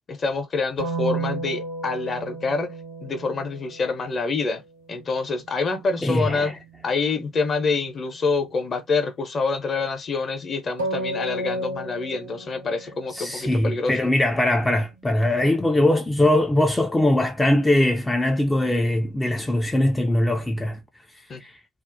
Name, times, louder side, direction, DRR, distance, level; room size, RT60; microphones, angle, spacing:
voice 1, 0.1-4.6 4.9-6.6 6.8-14.1 21.3-21.4, left 4 dB, 35° left, 0.7 m, -26 dB
sound 1, 0.8-4.6 10.8-13.6 14.1-16.4, right 2 dB, 90° right, 0.8 m, -33 dB
voice 2, 6.0-6.5 13.1-20.8 21.4-21.5, left 1 dB, 10° left, 0.3 m, -21 dB
2.4 x 2.0 x 2.5 m
figure-of-eight pair, 55°, 0 cm